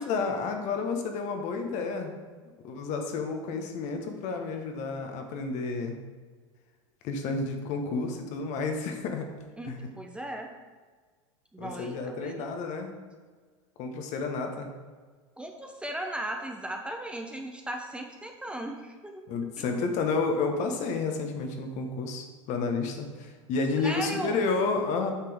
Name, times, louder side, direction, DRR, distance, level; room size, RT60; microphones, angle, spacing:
voice 1, 0.0-2.1 2.6-5.9 7.0-9.3 9.6-9.9 11.6-12.9 13.8-14.7 19.3-25.1, left 4 dB, 45° left, 4 dB, 1.3 m, -31 dB
voice 2, 9.6-10.5 11.5-12.5 15.4-19.2 23.8-24.5, right 1 dB, 5° right, 3 dB, 0.7 m, -37 dB
8.5 x 5.9 x 3.6 m, 1.5 s
hypercardioid pair, 85°, 16 cm